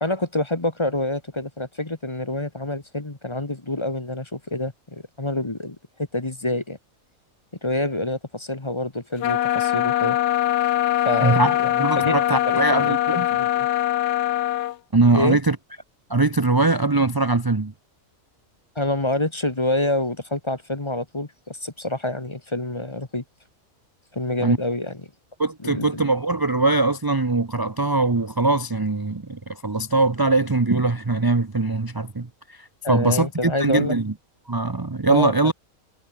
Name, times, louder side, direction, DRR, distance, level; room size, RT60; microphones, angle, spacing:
voice 1, 0.0-5.8 6.1-6.8 7.6-10.2 11.0-13.0 13.3-13.7 15.1-15.4 18.7-23.2 24.1-25.0 25.6-26.0 32.8-34.0 35.1-35.5, left 1 dB, 20° left, 1.4 m, -27 dB
sound 1, 9.2-14.8, left 13 dB, 65° left, 0.7 m, -22 dB
voice 2, 11.2-13.3 14.9-15.6 16.1-17.7 24.4-24.6 25.4-34.1 34.5-35.5, right 3 dB, 20° right, 0.8 m, -22 dB
omnidirectional pair, 1.5 m